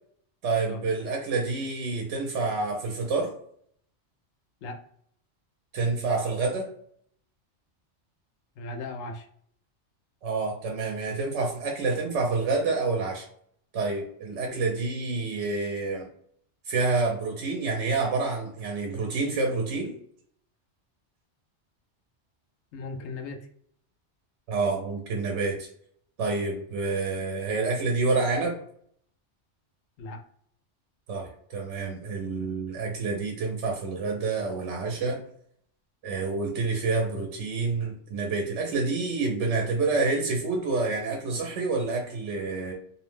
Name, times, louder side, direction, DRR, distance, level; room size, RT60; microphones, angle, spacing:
voice 1, 0.4-3.3 5.7-6.7 10.2-13.3 13.7-16.1 16.7-19.9 24.5-25.7 26.2-28.6 31.1-35.2 36.0-42.7, right 3 dB, 80° right, 1 dB, 0.9 m, -28 dB
voice 2, 8.6-9.3 14.5-14.6 22.7-23.5 30.0-30.2, left 2 dB, 75° left, 5 dB, 0.9 m, -37 dB
2.7 x 2.0 x 3.1 m, 0.64 s
omnidirectional pair, 1.2 m